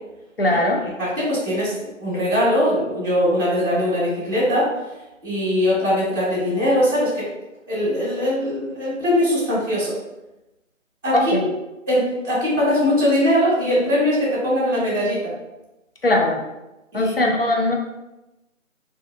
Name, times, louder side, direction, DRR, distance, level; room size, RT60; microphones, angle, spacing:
voice 1, 0.4-0.8 11.1-11.5 16.0-16.4 16.9-17.7, left 1 dB, 50° left, 0 dB, 0.5 m, -20 dB
voice 2, 1.0-4.7 5.2-7.3 7.7-9.9 11.0-11.5 11.9-15.3 16.9-17.1, left 1 dB, 15° right, -14 dB, 0.7 m, -21 dB
2.7 x 2.3 x 2.3 m, 0.99 s
figure-of-eight pair, 160°, 39 cm